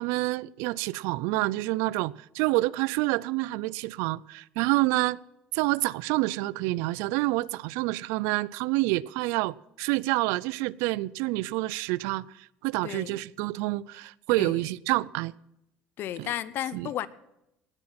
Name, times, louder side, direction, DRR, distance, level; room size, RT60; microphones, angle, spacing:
voice 1, 0.0-5.2 5.5-15.3 16.2-16.3 16.7-16.9, right 20 dB, 80° right, 0.4 m, -28 dB
voice 2, 12.8-13.2 14.4-14.7 16.0-17.1, left 12 dB, 55° left, 0.8 m, -33 dB
19.0 x 8.6 x 5.8 m
cardioid pair, 120°, 4 cm